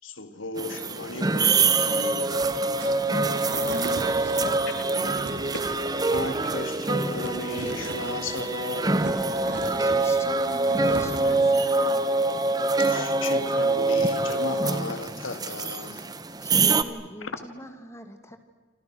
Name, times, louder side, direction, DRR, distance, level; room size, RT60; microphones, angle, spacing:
voice 1, 0.0-2.5 6.1-9.0 11.3-11.5 12.8-16.1 17.2-17.3, left 2 dB, 90° left, 2.5 m, -35 dB
sound 1, 0.6-16.8, right 3 dB, 20° right, 1.0 m, -25 dB
sound 2, 2.3-8.5 8.8-11.5, right 2 dB, 65° right, 3.1 m, -39 dB
voice 2, 2.8-5.3, right 1 dB, 85° right, 3.5 m, -40 dB
voice 3, 9.5-12.1 16.4-18.4, equal, 15° left, 2.2 m, -42 dB
28.0 x 27.5 x 6.3 m
head